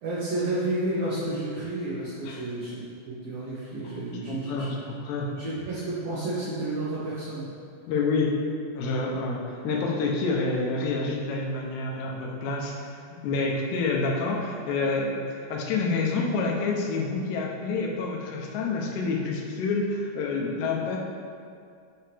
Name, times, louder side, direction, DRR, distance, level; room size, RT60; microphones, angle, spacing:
voice 1, 0.0-4.8 5.4-7.5, right 2 dB, 70° right, -9 dB, 2.5 m, -31 dB
voice 2, 4.3-5.4 7.9-8.4 8.8-12.8 13.1-21.0, left 3 dB, 80° left, -1 dB, 2.8 m, -28 dB
8.8 x 4.7 x 3.4 m, 2.3 s
omnidirectional pair, 5.0 m